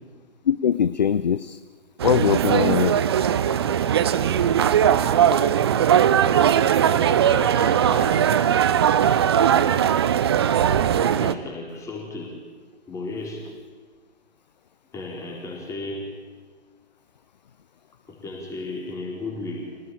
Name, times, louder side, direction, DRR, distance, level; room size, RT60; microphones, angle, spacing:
voice 1, 0.5-1.6 2.0-2.9, left 8 dB, 40° left, 14 dB, 0.7 m, -21 dB
sound 1, 2.0-11.3, right 9 dB, 25° right, 0.7 m, -19 dB
voice 2, 7.0-8.4 11.0-12.4 12.9-13.5 14.9-16.2 18.1-19.8, left 2 dB, 10° left, -1 dB, 4.5 m, -35 dB
26.0 x 18.5 x 8.9 m, 1.5 s
figure-of-eight pair, 140°, 34 cm